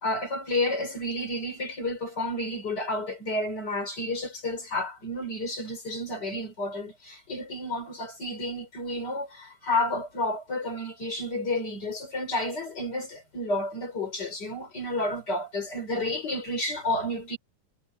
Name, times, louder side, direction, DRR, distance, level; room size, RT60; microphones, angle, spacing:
voice 1, 0.0-17.4, left 1 dB, 25° left, 4.0 m, -31 dB
omnidirectional pair, 4.4 m